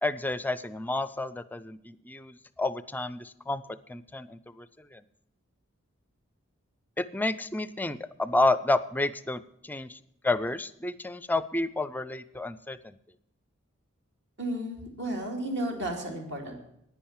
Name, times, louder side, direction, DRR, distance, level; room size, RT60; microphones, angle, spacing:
voice 1, 0.0-3.6 3.9-4.7 4.9-5.0 7.0-10.0 10.2-12.9, left 2 dB, 10° left, 15 dB, 0.5 m, -30 dB
voice 2, 14.4-16.6, right 1 dB, 55° right, 2 dB, 2.9 m, -33 dB
10.5 x 9.9 x 7.3 m, 0.77 s
head